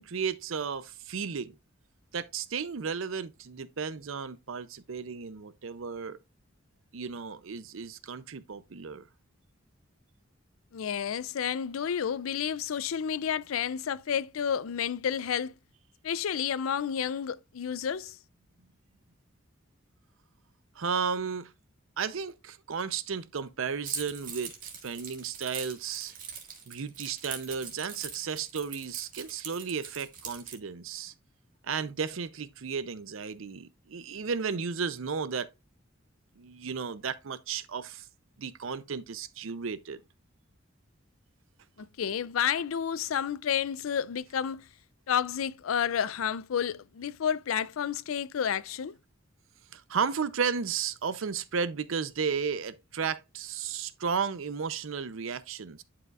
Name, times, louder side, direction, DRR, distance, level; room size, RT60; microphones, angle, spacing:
voice 1, 0.0-1.6 2.1-6.2 6.9-9.1 20.8-21.5 22.0-26.1 26.7-31.1 31.6-35.5 36.4-38.1 38.4-40.0 49.7-55.8, right 6 dB, 80° right, 0.6 m, -34 dB
voice 2, 10.7-15.5 16.0-18.2 41.8-44.7 45.1-49.0, left 8 dB, 90° left, 0.4 m, -30 dB
Keys jangling, 23.8-30.6, right 6 dB, 45° right, 1.8 m, -41 dB
11.0 x 4.9 x 2.4 m
head